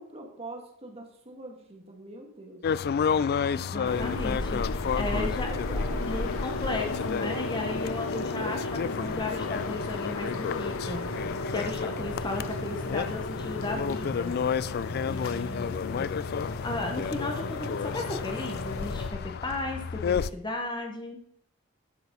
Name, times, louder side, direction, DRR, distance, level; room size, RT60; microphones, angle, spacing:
voice 1, 0.0-2.6 3.6-3.7 5.1-6.3, right 1 dB, 30° right, 1 dB, 2.0 m, -43 dB
sound 1, 2.6-20.3, left 7 dB, 50° left, 0.3 m, -32 dB
voice 2, 3.5-5.5 6.1-11.2 11.5-14.3 15.1-15.8 16.6-21.2, left 2 dB, 20° left, 3 dB, 1.0 m, -35 dB
sound 2, 3.8-19.1, left 2 dB, 90° left, 0.9 m, -34 dB
10.5 x 6.8 x 5.3 m, 0.69 s
head